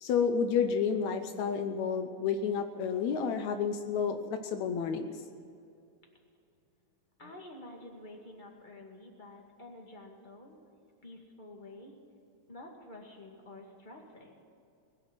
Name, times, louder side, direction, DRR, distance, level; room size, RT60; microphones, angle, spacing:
voice 1, 0.0-5.1, left 6 dB, 75° left, 7 dB, 2.1 m, -30 dB
voice 2, 7.2-10.6 11.0-12.0 12.5-14.3, left 1 dB, 20° left, 0 dB, 1.7 m, -49 dB
20.5 x 7.0 x 9.2 m, 2.5 s
omnidirectional pair, 3.4 m